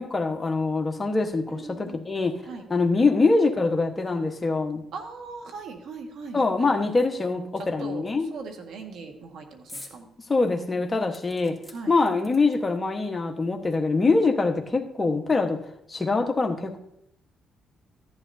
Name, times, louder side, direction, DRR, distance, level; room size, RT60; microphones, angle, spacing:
voice 1, 0.0-2.4 2.7-4.8 6.3-8.3 10.3-11.6 11.9-15.6 15.9-16.8, left 3 dB, 25° left, 3 dB, 1.3 m, -24 dB
voice 2, 1.5-2.0 2.5-2.6 4.9-6.4 7.8-10.1 11.1-11.2 11.7-11.9, right 4 dB, 75° right, 4 dB, 1.7 m, -39 dB
sound 1, 9.7-10.0 10.4-10.5 11.1-12.8 13.7-13.8 14.0-14.1, left 1 dB, 5° right, 2.9 m, -46 dB
14.5 x 11.0 x 2.8 m, 0.78 s
cardioid pair, 90°, 0 cm